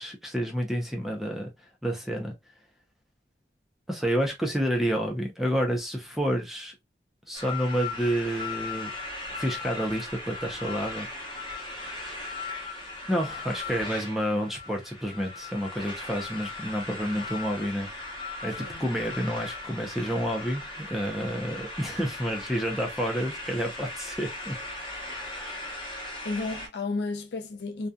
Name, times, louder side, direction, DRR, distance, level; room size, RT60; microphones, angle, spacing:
voice 1, 0.0-1.5 1.8-2.3 3.9-6.7 7.3-8.9 9.3-11.1 11.5-12.2 13.1-17.9 18.4-24.6, equal, ahead, 0.5 m, -29 dB
sound 1, 7.3-26.7, left 3 dB, 30° left, 0.9 m, -38 dB
voice 2, 18.6-18.9 26.2-27.9, left 3 dB, 75° left, 0.6 m, -32 dB
2.7 x 2.3 x 2.2 m
head